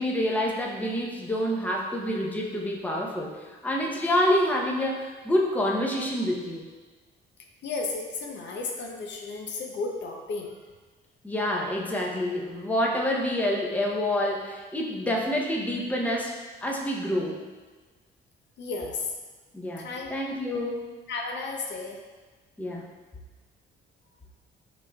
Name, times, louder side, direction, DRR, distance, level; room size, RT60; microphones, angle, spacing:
voice 1, 0.0-6.6 11.2-17.4 19.5-20.9 22.6-22.9, left 1 dB, 5° left, -2 dB, 0.6 m, -27 dB
voice 2, 7.6-10.6 18.6-19.1 19.8-20.1 21.1-22.0, left 3 dB, 65° left, 1 dB, 0.6 m, -33 dB
5.8 x 3.1 x 2.2 m, 1.4 s
cardioid pair, 90°, 20 cm